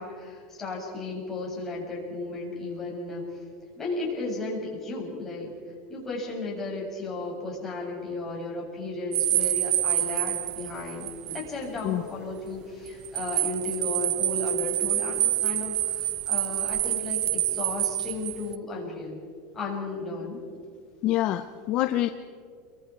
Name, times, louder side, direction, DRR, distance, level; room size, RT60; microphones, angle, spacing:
voice 1, 0.0-3.3 3.8-5.5 5.9-19.2 19.5-20.4, left 2 dB, 15° left, -3 dB, 6.6 m, -34 dB
sound 1, 9.1-11.5 11.8-11.9 12.9-18.6, right 13 dB, 40° right, 0.5 m, -27 dB
voice 2, 21.0-22.1, left 14 dB, 45° left, 9 dB, 0.8 m, -26 dB
29.5 x 23.0 x 4.7 m, 2.1 s
supercardioid pair, 145°, 2 cm